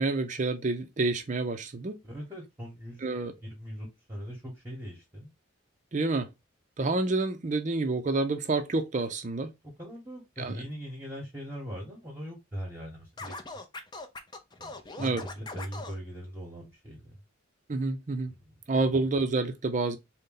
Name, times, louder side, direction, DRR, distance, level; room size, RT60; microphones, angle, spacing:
voice 1, 0.0-2.0 3.0-3.3 5.9-6.3 6.8-9.5 10.4-10.6 15.0-15.2 17.7-18.3 18.7-20.0, right 3 dB, 35° right, 0.5 m, -28 dB
voice 2, 2.0-3.0 3.4-5.3 9.8-13.4 14.6-14.7 15.0-17.2 18.4-18.5, equal, 10° right, 1.0 m, -40 dB
Scratching (performance technique), 13.2-16.0, left 3 dB, 20° left, 0.5 m, -41 dB
4.0 x 2.2 x 3.7 m
head